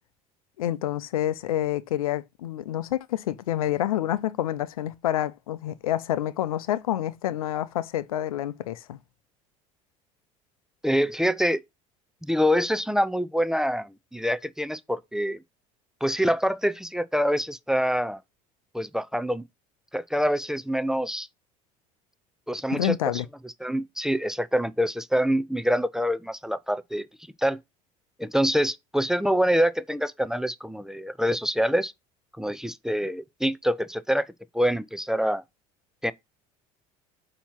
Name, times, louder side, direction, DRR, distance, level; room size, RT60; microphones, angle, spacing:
voice 1, 0.6-9.0 22.7-23.3, left 12 dB, 90° left, 0.5 m, -28 dB
voice 2, 10.8-11.6 12.2-15.4 16.0-18.2 18.7-19.4 19.9-21.3 22.5-23.0 23.4-27.1 27.4-27.6 28.2-31.9 32.4-34.3 34.5-35.4 36.0-36.1, equal, 5° right, 0.4 m, -25 dB
7.0 x 2.9 x 5.8 m
hypercardioid pair, 75°, 18 cm